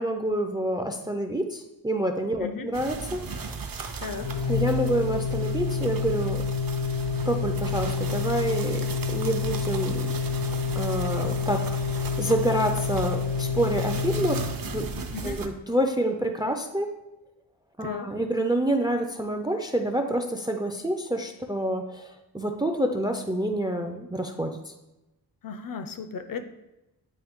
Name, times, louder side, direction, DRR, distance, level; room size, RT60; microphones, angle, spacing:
voice 1, 0.0-3.2 4.5-6.4 7.3-10.1 10.8-14.9 15.2-16.9 17.8-22.1 22.3-24.6, right 1 dB, 10° right, 5 dB, 0.4 m, -28 dB
sound 1, 2.7-15.5, right 4 dB, 55° right, 0.6 m, -37 dB
voice 2, 4.0-4.3 15.1-15.4 17.8-18.1 25.4-26.4, left 5 dB, 55° left, 9 dB, 0.6 m, -35 dB
Organ, 4.2-15.1, left 5 dB, 80° left, 0.9 m, -28 dB
8.8 x 3.1 x 3.5 m, 0.96 s
wide cardioid pair, 105°, 41 cm